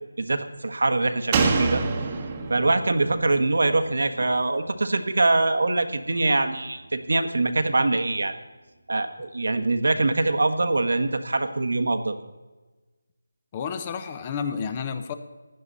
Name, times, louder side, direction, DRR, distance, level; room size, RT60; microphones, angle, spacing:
voice 1, 0.2-1.8 2.5-8.3 8.9-12.2, right 2 dB, 70° right, 8 dB, 1.3 m, -23 dB
Slam, 1.3-4.8 5.1-5.2, right 4 dB, 20° right, 1.1 m, -27 dB
voice 2, 13.5-15.1, left 6 dB, 20° left, 10 dB, 0.7 m, -30 dB
15.5 x 11.0 x 4.1 m, 1.2 s
figure-of-eight pair, 170°, 0 cm